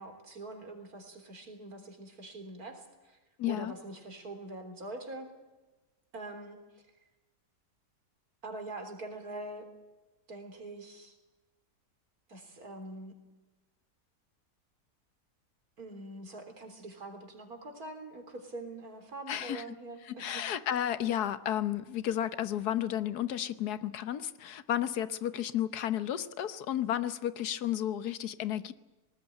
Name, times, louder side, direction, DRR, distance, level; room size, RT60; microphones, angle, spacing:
voice 1, 0.0-3.2 3.5-5.3 6.1-6.8 8.4-9.7 10.3-11.2 12.3-13.2 15.8-20.4, right 2 dB, 70° right, 5 dB, 4.1 m, -44 dB
voice 2, 3.4-3.7 19.3-19.6 20.1-28.7, left 11 dB, 80° left, 14 dB, 1.5 m, -32 dB
19.5 x 19.0 x 9.9 m, 1.1 s
omnidirectional pair, 1.7 m